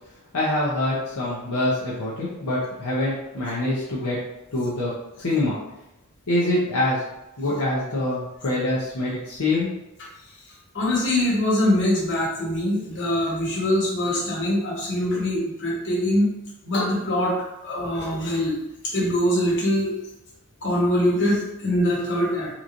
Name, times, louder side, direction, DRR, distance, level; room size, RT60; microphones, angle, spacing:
voice 1, 0.3-4.2 4.5-5.6 6.3-7.0 7.4-9.7, left 1 dB, 75° left, -7 dB, 0.8 m, -25 dB
voice 2, 10.7-16.3 16.6-17.3 17.6-18.5 18.9-19.9 20.6-22.5, left 1 dB, 55° left, -4 dB, 1.2 m, -23 dB
3.8 x 3.0 x 2.6 m, 0.90 s
head